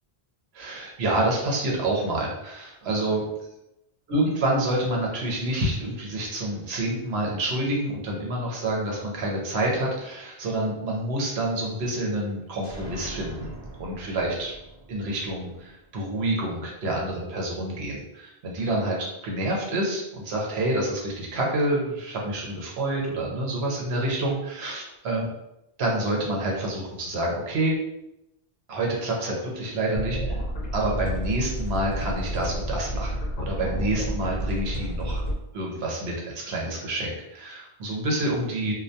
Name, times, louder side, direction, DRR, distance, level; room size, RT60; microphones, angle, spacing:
voice 1, 0.5-3.2 4.1-13.5 13.8-14.5 14.9-25.2 25.8-27.7 28.7-30.3 30.7-33.1 33.4-35.2 35.5-38.7, right 1 dB, 80° right, -2 dB, 1.0 m, -28 dB
sound 1, 12.6-16.3, right 2 dB, 50° right, 0.6 m, -42 dB
sound 2, 29.9-35.3, equal, 50° left, 0.6 m, -30 dB
2.3 x 2.2 x 2.7 m, 0.87 s
omnidirectional pair, 1.1 m